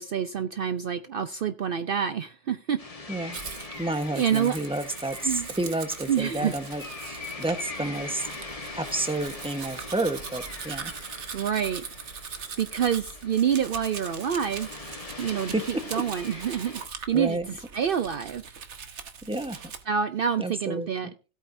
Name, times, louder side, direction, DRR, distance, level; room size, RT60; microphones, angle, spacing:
voice 1, 0.0-2.8 4.1-4.6 5.2-5.5 6.1-6.5 11.3-14.7 15.2-18.4 19.9-21.1, right 8 dB, 60° right, 10 dB, 0.8 m, -27 dB
sound 1, 2.8-16.9, left 3 dB, 30° left, 1.4 m, -41 dB
voice 2, 3.1-3.4 3.8-8.3 8.7-10.9 15.5-15.6 17.1-17.5 19.2-19.6 20.4-21.1, right 2 dB, 5° right, 7 dB, 1.1 m, -30 dB
Domestic sounds home sounds, 3.3-19.8, right 6 dB, 75° right, 1.4 m, -41 dB
17.0 x 8.5 x 2.7 m, 0.33 s
omnidirectional pair, 1.2 m